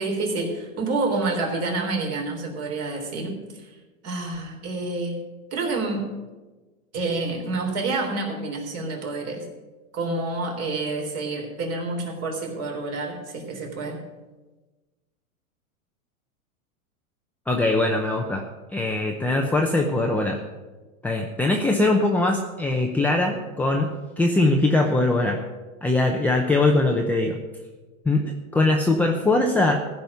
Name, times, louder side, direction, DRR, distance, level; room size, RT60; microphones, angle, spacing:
voice 1, 0.0-3.7 4.0-6.2 6.9-9.5 9.9-14.0, right 3 dB, 35° right, 1 dB, 3.5 m, -28 dB
voice 2, 17.5-18.4 18.7-20.4 21.0-23.9 24.2-25.4 25.8-27.4 28.1-29.8, left 2 dB, 5° left, 1 dB, 0.7 m, -21 dB
15.0 x 5.5 x 9.4 m, 1.2 s
supercardioid pair, 140°, 41 cm